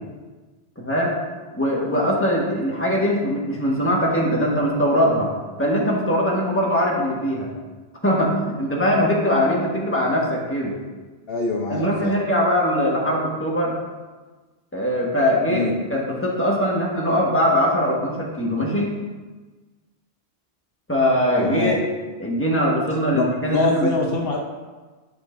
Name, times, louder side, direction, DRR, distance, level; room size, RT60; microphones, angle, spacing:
voice 1, 0.8-1.2 1.5-5.3 5.6-7.5 8.0-10.7 11.7-13.7 14.7-18.9 20.9-21.8 22.2-24.1, equal, 10° left, -3 dB, 1.5 m, -21 dB
voice 2, 11.3-12.1 15.5-15.7 21.4-21.8 23.1-23.2 23.5-24.4, left 3 dB, 65° left, 1 dB, 0.9 m, -24 dB
11.0 x 6.5 x 2.6 m, 1.3 s
omnidirectional pair, 1.1 m